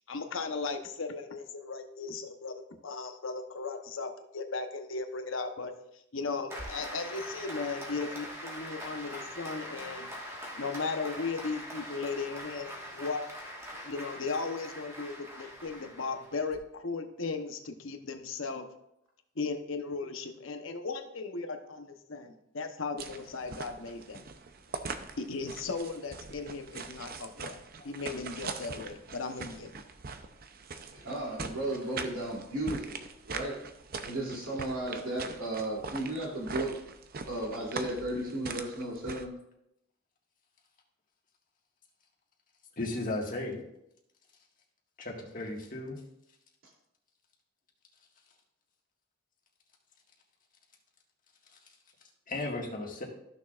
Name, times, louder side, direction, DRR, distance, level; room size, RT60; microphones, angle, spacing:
voice 1, 0.1-5.7 6.1-10.1 10.6-13.2 13.8-18.6 19.4-24.3 25.2-29.7, left 4 dB, 75° left, 6 dB, 0.9 m, -36 dB
Applause, 6.5-16.6, equal, 15° right, 1.5 m, -43 dB
sound 1, 23.0-39.3, right 4 dB, 45° right, 0.6 m, -42 dB
voice 2, 30.9-33.0 33.3-33.6 34.0-36.8 37.3-39.3, right 1 dB, 85° right, -3 dB, 2.8 m, -34 dB
voice 3, 42.8-43.6 45.0-46.0 52.3-53.1, left 2 dB, 45° left, -1 dB, 1.7 m, -35 dB
14.0 x 6.4 x 2.5 m, 0.79 s
head